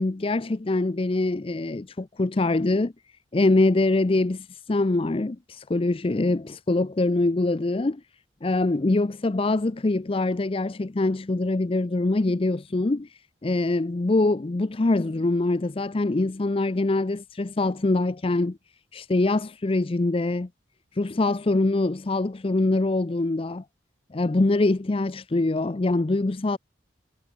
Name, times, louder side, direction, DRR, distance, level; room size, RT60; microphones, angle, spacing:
voice 1, 0.0-2.9 3.3-8.0 8.4-13.1 13.4-18.6 18.9-20.5 21.0-23.6 24.1-26.6, left 2 dB, 30° left, 0.5 m, -24 dB
head